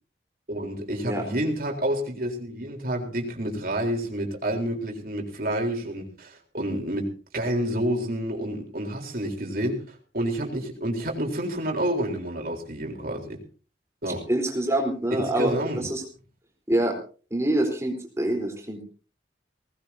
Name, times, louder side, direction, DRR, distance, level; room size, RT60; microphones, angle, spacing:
voice 1, 0.5-13.4 14.0-14.3 15.1-15.9, right 1 dB, 50° right, 2 dB, 4.0 m, -29 dB
voice 2, 14.3-16.0 16.7-16.9 17.3-18.8, right 1 dB, 15° right, 1 dB, 4.0 m, -25 dB
19.5 x 19.0 x 2.8 m, 0.37 s
head